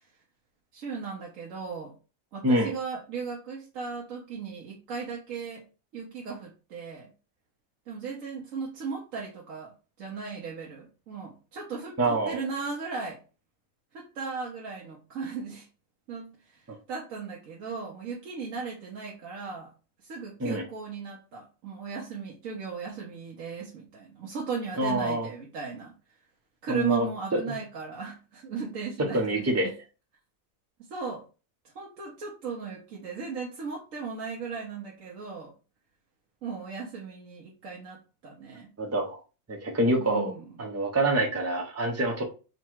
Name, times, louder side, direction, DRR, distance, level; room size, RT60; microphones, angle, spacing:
voice 1, 0.7-2.0 2.3-5.6 5.9-7.1 7.9-9.7 10.0-13.2 13.9-15.7 16.1-16.6 16.9-19.7 20.0-25.9 26.6-29.4 30.9-31.2 31.8-35.5 36.4-38.7 40.0-40.4, right 5 dB, 80° right, -3 dB, 1.2 m, -36 dB
voice 2, 2.4-2.8 12.0-12.4 16.7-16.8 20.4-20.7 24.8-25.3 26.7-27.6 29.0-29.7 38.8-39.2 39.5-40.3 40.6-42.2, right 1 dB, 20° right, 2 dB, 0.5 m, -26 dB
4.0 x 2.2 x 4.5 m, 0.34 s
omnidirectional pair, 1.4 m